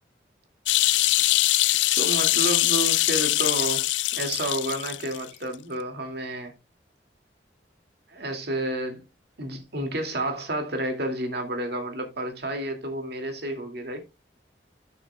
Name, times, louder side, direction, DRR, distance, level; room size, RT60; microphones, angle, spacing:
sound 1, 0.7-5.2 5.5-5.6, left 17 dB, 80° left, 0.4 m, -23 dB
voice 1, 1.9-3.9 4.2-6.5 8.1-9.0 9.4-14.0, right 1 dB, 60° right, 2.3 m, -30 dB
13.0 x 6.6 x 2.3 m
head